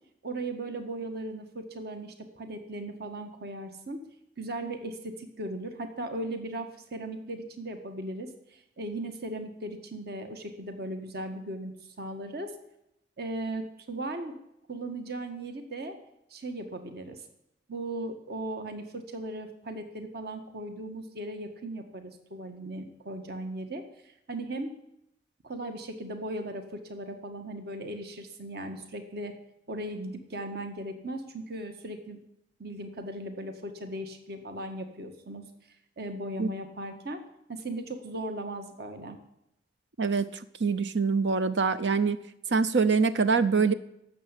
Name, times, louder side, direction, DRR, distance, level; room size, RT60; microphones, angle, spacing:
voice 1, 0.2-4.0 4.4-12.5 13.2-14.3 14.7-16.0 16.3-17.2 17.7-24.7 25.4-29.3 29.7-32.2 32.6-35.4 36.0-37.2 37.5-39.2, right 1 dB, 65° right, 6 dB, 1.6 m, -37 dB
voice 2, 40.0-42.2 42.5-43.7, right 5 dB, 80° right, 13 dB, 0.7 m, -25 dB
12.0 x 7.8 x 9.8 m, 0.81 s
head